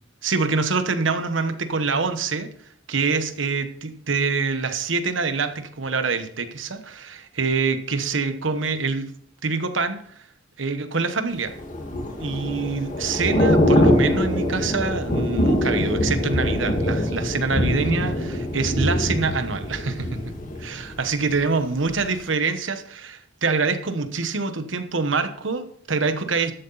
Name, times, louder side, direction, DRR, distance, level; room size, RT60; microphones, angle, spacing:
voice 1, 0.2-2.5 2.9-9.1 9.4-10.2 10.6-11.5 12.2-20.3 20.6-26.5, right 4 dB, 75° right, 9 dB, 1.1 m, -25 dB
Thunder / Rain, 11.5-21.4 21.8-22.0, left 1 dB, 45° left, 1.8 m, -23 dB
13.5 x 7.9 x 4.0 m, 0.62 s
head